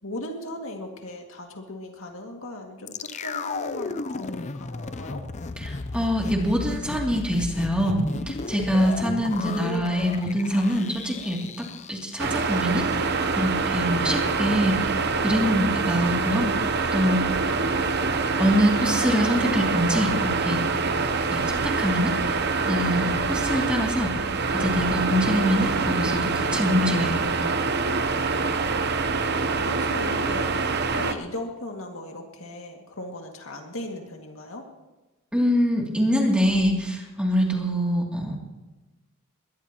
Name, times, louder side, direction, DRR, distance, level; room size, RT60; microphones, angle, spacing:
voice 1, 0.0-5.2 9.4-10.0 29.5-34.6, left 1 dB, 65° left, 2 dB, 2.3 m, -37 dB
sound 1, 2.9-13.0 13.3-13.4, left 3 dB, 30° left, 0.6 m, -34 dB
voice 2, 5.6-11.4 11.9-12.9 13.4-14.9 15.2-16.5 16.9-17.2 18.4-20.6 21.3-22.1 22.7-24.1 24.5-27.2 35.3-38.4, equal, 5° right, -2 dB, 2.8 m, -24 dB
sound 2, 12.2-31.1, right 4 dB, 50° right, 0.9 m, -25 dB
22.0 x 19.0 x 3.0 m, 1.1 s
head